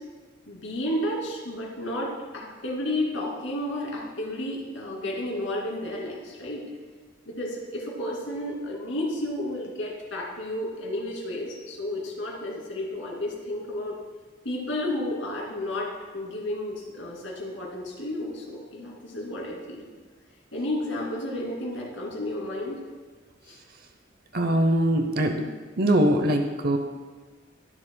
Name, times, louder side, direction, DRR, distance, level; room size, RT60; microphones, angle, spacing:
voice 1, 0.5-6.6 7.3-14.0 14.4-19.9 20.5-22.8 23.4-23.6, left 1 dB, 80° left, -3 dB, 2.7 m, -32 dB
voice 2, 24.3-25.5 25.8-26.8, right 1 dB, 50° right, 5 dB, 0.7 m, -22 dB
21.0 x 7.3 x 2.3 m, 1.4 s
head